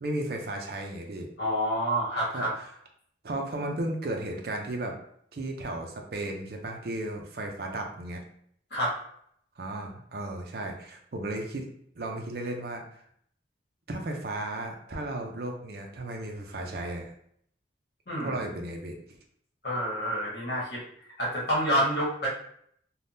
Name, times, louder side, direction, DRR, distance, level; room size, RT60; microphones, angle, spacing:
voice 1, 0.0-1.3 2.3-2.5 3.2-5.0 5.3-8.2 9.6-11.7 11.9-12.8 13.9-17.1 18.2-18.9, right 1 dB, 55° right, 2 dB, 0.5 m, -34 dB
voice 2, 1.4-2.5 8.7-9.0 18.1-18.4 19.6-20.8 21.2-22.3, equal, 60° left, -5 dB, 1.3 m, -28 dB
3.4 x 2.2 x 2.7 m, 0.67 s
head